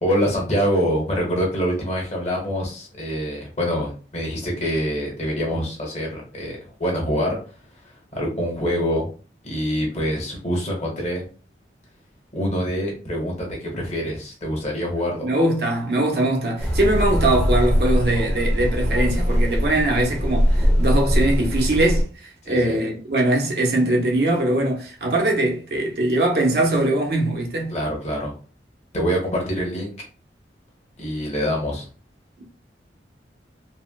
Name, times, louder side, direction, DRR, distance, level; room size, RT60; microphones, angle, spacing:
voice 1, 0.0-7.4 7.8-9.1 9.4-11.3 12.3-15.3 22.4-22.8 27.7-28.3 28.9-29.9 31.0-31.9, equal, 40° left, 1.2 m, -25 dB
voice 2, 15.2-22.1 22.5-27.7, right 1 dB, 60° right, 0.8 m, -21 dB
sound 1, 16.6-22.0, equal, 5° left, 0.8 m, -21 dB
4.2 x 2.1 x 2.2 m
head